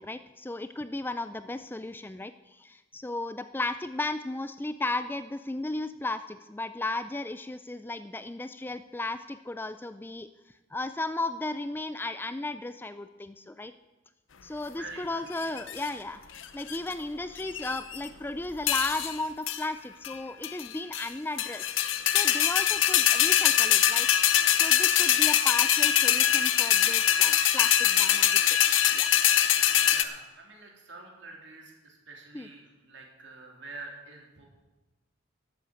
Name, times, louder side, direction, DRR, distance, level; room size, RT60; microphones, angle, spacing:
voice 1, 0.0-10.3 10.7-13.7 14.4-16.2 16.5-21.7 22.1-24.1 24.5-28.6 28.9-29.1 32.3-32.5, left 2 dB, 10° left, 12 dB, 0.3 m, -35 dB
voice 2, 14.7-15.2 29.8-34.5, right 2 dB, 65° right, 0 dB, 3.2 m, -46 dB
sound 1, 15.4-15.9 16.4-16.9 17.4-18.1 18.7-19.2 19.5-19.6 20.0-20.2 20.4-21.1 21.4-30.0, left 11 dB, 80° left, 0.8 m, -23 dB
12.5 x 8.5 x 7.9 m, 1.1 s
head